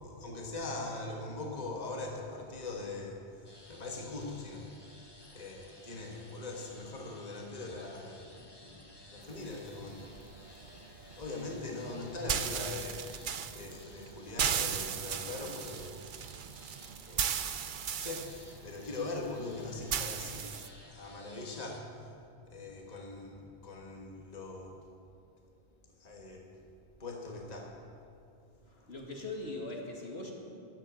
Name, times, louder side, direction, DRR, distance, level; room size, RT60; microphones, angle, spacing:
voice 1, 0.0-3.2 3.7-4.7 5.3-10.1 11.1-16.0 17.1-17.3 17.9-20.5 20.9-22.1 22.5-24.8 26.0-26.5 27.0-27.7, left 2 dB, 40° left, 0 dB, 1.6 m, -41 dB
sound 1, 3.4-21.8, left 1 dB, 25° left, 1.3 m, -57 dB
sound 2, 9.2-20.7, right 8 dB, 55° right, 0.7 m, -37 dB
voice 2, 28.7-30.3, left 2 dB, 65° left, -1 dB, 2.2 m, -41 dB
14.0 x 8.0 x 9.1 m, 2.4 s
omnidirectional pair, 1.1 m